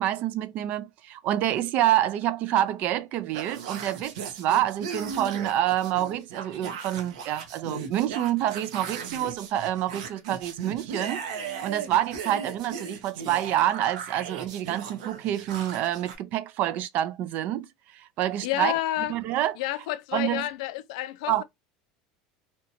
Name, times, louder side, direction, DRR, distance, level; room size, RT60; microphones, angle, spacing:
voice 1, 0.0-17.7 17.9-18.7 19.1-19.5 20.1-20.4 21.3-21.4, right 12 dB, 55° right, 0.4 m, -27 dB
sound 1, 3.3-16.1, right 6 dB, 85° right, 0.7 m, -37 dB
voice 2, 18.4-19.2 19.6-21.4, left 15 dB, 75° left, 0.3 m, -29 dB
2.8 x 2.2 x 2.7 m
supercardioid pair, 115°, 3 cm